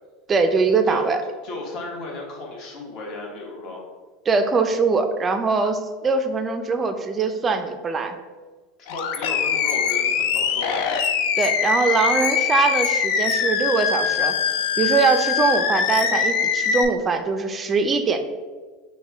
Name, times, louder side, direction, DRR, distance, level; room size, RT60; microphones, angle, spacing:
voice 1, 0.3-1.2 4.3-8.2 11.4-14.3 14.8-18.2, right 4 dB, 20° right, 7 dB, 0.4 m, -22 dB
voice 2, 1.4-3.8 8.8-10.8, left 2 dB, 45° left, -1 dB, 1.1 m, -34 dB
Animal, 8.9-16.8, left 7 dB, 65° left, 0.4 m, -22 dB
5.3 x 2.2 x 3.4 m, 1.4 s
supercardioid pair, 130°, 0 cm